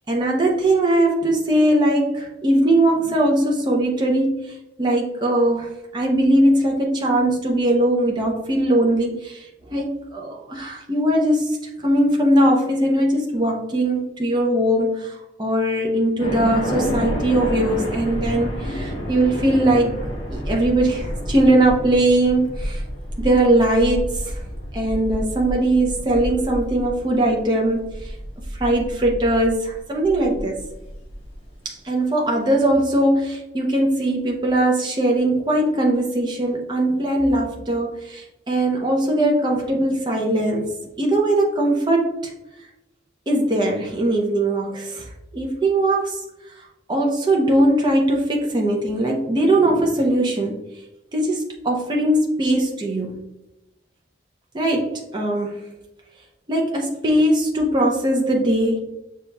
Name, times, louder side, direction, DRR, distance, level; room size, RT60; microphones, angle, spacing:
voice 1, 0.1-19.9 20.3-22.8 23.2-24.4 24.7-28.1 28.5-30.6 31.6-40.7 41.0-42.3 43.3-46.2 46.5-50.6 51.1-53.1 54.5-55.6 56.5-58.8, right 1 dB, 25° right, -1 dB, 0.5 m, -20 dB
sound 1, 16.2-31.3, equal, 30° left, 0.9 m, -29 dB
6.5 x 2.8 x 2.2 m, 0.94 s
head